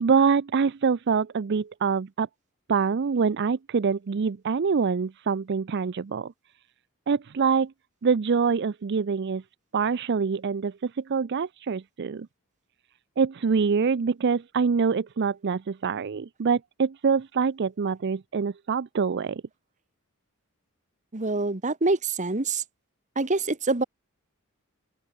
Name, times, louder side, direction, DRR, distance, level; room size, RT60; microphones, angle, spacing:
voice 1, 0.0-2.3 2.7-6.3 7.1-7.7 8.0-9.4 9.7-12.3 13.2-19.4, right 5 dB, 50° right, 0.5 m, -25 dB
voice 2, 21.1-22.6 23.2-23.8, right 3 dB, 35° right, 1.4 m, -25 dB
open air
head